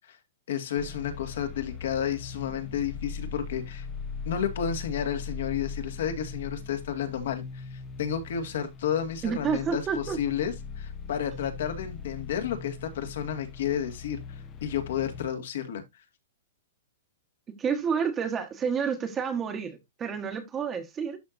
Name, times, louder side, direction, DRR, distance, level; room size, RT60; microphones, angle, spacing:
voice 1, 0.5-3.9 4.3-15.8, left 9 dB, 65° left, 1.9 m, -31 dB
sound 1, 0.8-15.3, left 5 dB, 20° left, 0.6 m, -40 dB
voice 2, 9.2-10.2 17.6-21.2, right 6 dB, 15° right, 1.1 m, -29 dB
12.0 x 4.5 x 2.5 m
hypercardioid pair, 165°, 0 cm